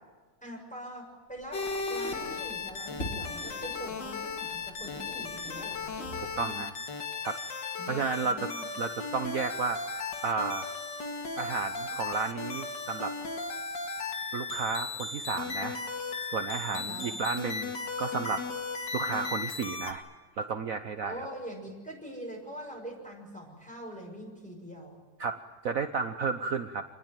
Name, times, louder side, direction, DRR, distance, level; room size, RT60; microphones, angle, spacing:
voice 1, 0.4-5.9 6.3-6.6 7.8-7.9 8.2-8.6 16.7-17.2 21.0-25.0, equal, 5° left, 0 dB, 6.5 m, -43 dB
Squeak, 1.3-6.6, equal, 45° left, 4.6 m, -44 dB
sound 1, 1.5-19.9, left 4 dB, 80° left, 2.9 m, -36 dB
voice 2, 6.2-6.7 7.2-7.4 7.9-8.5 8.8-10.7 11.4-13.1 14.3-15.8 16.3-17.7 18.0-18.4 18.9-20.0 20.4-21.3 25.2-26.8, right 5 dB, 55° right, 8 dB, 1.3 m, -32 dB
27.0 x 20.0 x 9.2 m, 1.4 s
omnidirectional pair, 1.9 m